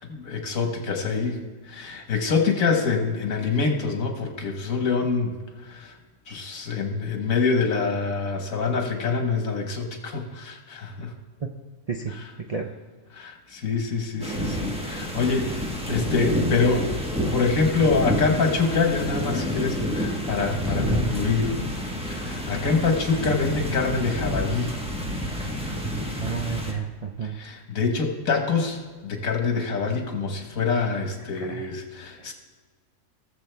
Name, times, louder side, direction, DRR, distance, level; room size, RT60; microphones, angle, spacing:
voice 1, 0.0-5.4 5.6-5.9 6.3-11.1 12.1-12.2 13.1-16.9 17.3-21.6 22.1-24.8 27.2-32.3, left 4 dB, 80° left, 4 dB, 1.8 m, -25 dB
sound 1, 14.2-26.7, equal, 5° right, 1.2 m, -29 dB
voice 2, 26.2-27.4 31.4-31.7 32.2-32.3, right 6 dB, 45° right, 2 dB, 0.5 m, -31 dB
18.0 x 7.2 x 3.4 m, 1.5 s
omnidirectional pair, 1.4 m